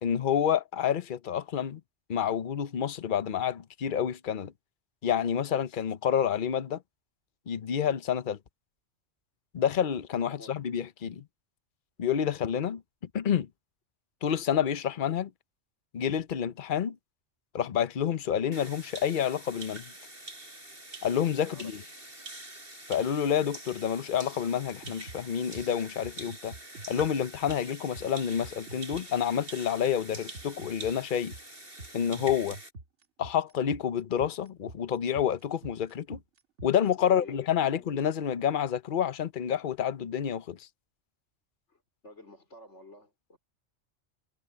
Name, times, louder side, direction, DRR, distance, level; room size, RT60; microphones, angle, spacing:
voice 1, 0.0-1.8 2.1-4.5 5.0-6.8 7.5-8.4 9.5-11.2 12.0-12.8 13.1-13.5 14.2-15.3 15.9-17.0 17.5-19.9 21.0-21.8 22.9-26.5 26.9-31.3 31.9-32.6 33.2-36.2 36.6-40.7, left 8 dB, 50° left, 0.9 m, -28 dB
sound 1, 18.5-32.7, right 2 dB, 50° right, 8.5 m, -46 dB
voice 2, 21.4-21.9 36.9-37.9 41.7-43.4, left 2 dB, 75° left, 4.6 m, -50 dB
sound 2, 24.6-29.2 30.1-36.9, right 2 dB, 75° right, 2.2 m, -45 dB
omnidirectional pair, 1.2 m